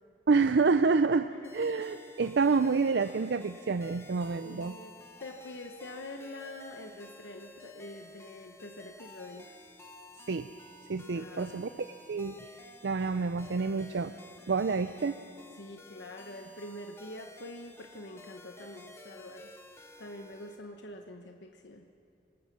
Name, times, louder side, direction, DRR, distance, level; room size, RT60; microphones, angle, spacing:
voice 1, 0.3-1.3 1.5-4.8 10.3-10.5 10.9-12.4 12.8-14.1 14.5-15.2, right 4 dB, 75° right, 11 dB, 0.5 m, -28 dB
sound 1, 1.4-20.6, left 1 dB, 15° left, 1.3 m, -53 dB
voice 2, 4.4-4.9 5.2-9.5 11.1-11.6 15.5-19.6 20.0-21.9, left 1 dB, 85° left, 4 dB, 1.1 m, -45 dB
26.0 x 19.5 x 6.1 m, 2.6 s
head